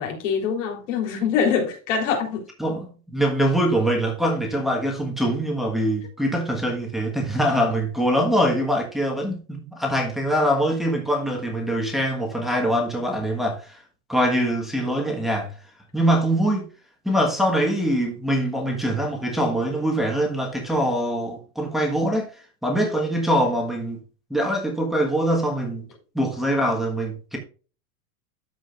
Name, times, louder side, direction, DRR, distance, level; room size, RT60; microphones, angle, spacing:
voice 1, 0.0-2.5, left 6 dB, 55° left, 3.6 m, -24 dB
voice 2, 2.6-13.8 14.1-15.5 15.9-16.7 17.0-22.3 22.6-24.0 24.3-25.9 26.1-27.4, equal, ahead, 1.3 m, -23 dB
13.5 x 5.0 x 2.4 m
supercardioid pair, 175°, 42 cm